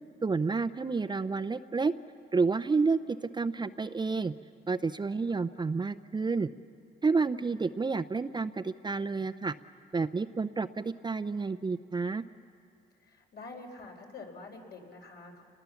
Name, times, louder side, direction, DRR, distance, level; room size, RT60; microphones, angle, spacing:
voice 1, 0.2-1.9 2.3-4.3 4.7-6.5 7.0-9.5 9.9-12.2, right 4 dB, 20° right, 9 dB, 0.6 m, -30 dB
voice 2, 13.0-15.4, left 3 dB, 55° left, 2 dB, 4.3 m, -47 dB
29.0 x 21.0 x 7.1 m, 2.5 s
cardioid pair, 90°, 20 cm